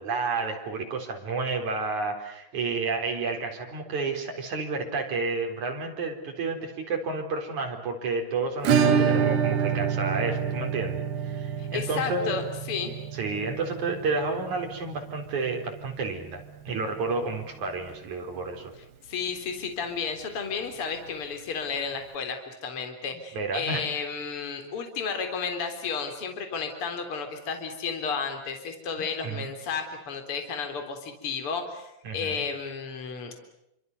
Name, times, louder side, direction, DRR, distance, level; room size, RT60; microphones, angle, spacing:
voice 1, 0.0-12.4 13.1-18.7 23.3-23.9 29.0-29.5 32.0-32.4, right 4 dB, 40° right, 3 dB, 5.2 m, -31 dB
Acoustic guitar / Strum, 8.6-17.3 17.5-17.6 17.9-18.0 18.4-18.5 20.5-20.6 21.7-21.8, right 7 dB, 70° right, 3.9 m, -28 dB
voice 2, 11.6-13.1 19.0-33.4, left 5 dB, 30° left, 6 dB, 4.0 m, -32 dB
29.5 x 25.5 x 6.8 m, 0.80 s
omnidirectional pair, 5.3 m